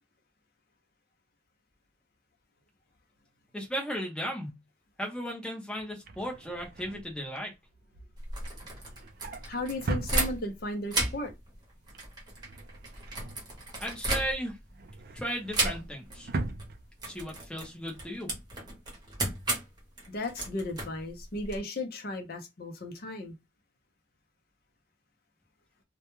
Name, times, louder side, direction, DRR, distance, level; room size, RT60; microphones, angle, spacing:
voice 1, 3.5-4.5 5.0-7.5 13.8-14.6 15.1-16.3 17.1-18.3, equal, 5° left, 0.7 m, -35 dB
Drawer open or close, 5.8-10.8 11.2-11.5 11.8-14.0 14.4-17.4 17.7-17.9 18.2-18.3, right 2 dB, 50° right, 0.4 m, -40 dB
sound 1, 8.2-10.6 10.9-14.7 15.5-16.2 16.4-16.7 17.0-21.6, right 2 dB, 20° right, 0.9 m, -34 dB
voice 2, 9.5-11.3 20.1-23.3, left 1 dB, 50° left, 0.6 m, -35 dB
2.2 x 2.1 x 3.0 m
head